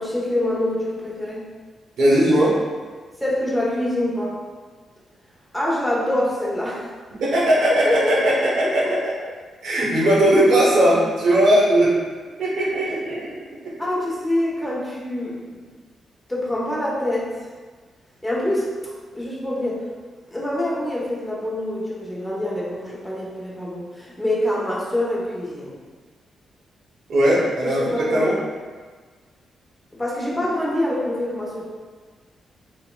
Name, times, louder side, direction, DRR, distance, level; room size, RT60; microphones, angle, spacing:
voice 1, 0.0-1.5 3.2-4.4 5.5-6.9 7.8-8.3 13.8-15.6 16.3-17.4 18.2-18.7 19.1-19.8 20.3-25.8 27.6-28.3 29.9-31.7, left 1 dB, 10° left, -6 dB, 0.8 m, -25 dB
voice 2, 2.0-2.6 7.2-9.1 9.6-12.0 12.4-13.3 13.6-13.7 27.1-28.3, right 1 dB, 80° right, -6 dB, 0.9 m, -18 dB
2.9 x 2.8 x 2.2 m, 1.5 s
cardioid pair, 70°, 0 cm